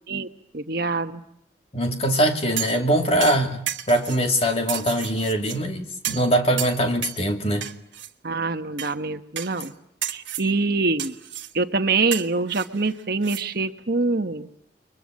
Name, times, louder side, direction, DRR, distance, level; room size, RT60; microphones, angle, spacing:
voice 1, 0.5-1.2 8.2-9.7 10.1-11.1 11.5-14.5, right 3 dB, 55° right, 8 dB, 1.2 m, -25 dB
voice 2, 1.7-3.6 3.9-7.7, right 1 dB, 35° left, 3 dB, 2.6 m, -22 dB
sound 1, 2.6-2.9 3.2-4.2 4.7-5.6 6.0-6.3 6.6-7.2 7.6-8.1 8.8-8.9 9.4-9.7 10.0-10.5 11.0-11.5 12.1-13.4 13.8-13.9, right 11 dB, 80° right, 1.4 m, -32 dB
28.5 x 23.0 x 7.6 m, 0.76 s
head